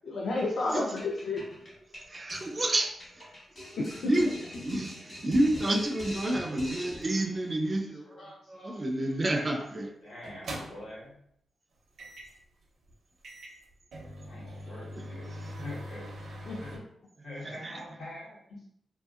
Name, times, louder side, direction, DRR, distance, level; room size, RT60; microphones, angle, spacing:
voice 1, 0.0-1.4 3.8-4.1 16.4-16.8, left 2 dB, 60° left, -2 dB, 0.4 m, -31 dB
sound 1, 1.0-7.3, left 1 dB, 40° left, 1.1 m, -43 dB
voice 2, 2.1-2.9 3.2-3.3 4.0-4.3 4.6-8.0 8.5-9.9 17.4-17.8, right 1 dB, 25° right, 3 dB, 0.3 m, -29 dB
voice 3, 5.4-6.6 6.9-9.7 10.0-11.1 14.2-16.3 16.6-16.8 17.2-18.6, left 1 dB, 80° left, -6 dB, 1.3 m, -46 dB
sound 2, 9.4-9.6 10.2-11.0 12.0-12.4 12.9-13.0 13.2-16.8, equal, 75° right, 0.5 m, -42 dB
2.7 x 2.6 x 2.3 m, 0.69 s
wide cardioid pair, 160°, 0 cm